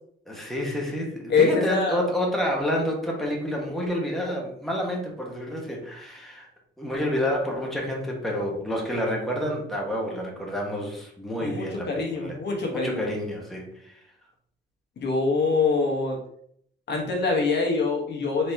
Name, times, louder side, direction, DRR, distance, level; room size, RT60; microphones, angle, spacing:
voice 1, 0.3-6.5 6.8-12.4 12.7-14.0, equal, ahead, -2 dB, 1.3 m, -29 dB
voice 2, 1.3-2.0 11.4-13.0 15.0-16.2 16.9-18.5, left 4 dB, 60° left, 1 dB, 1.2 m, -24 dB
4.3 x 3.0 x 3.5 m, 0.66 s
cardioid pair, 90°, 20 cm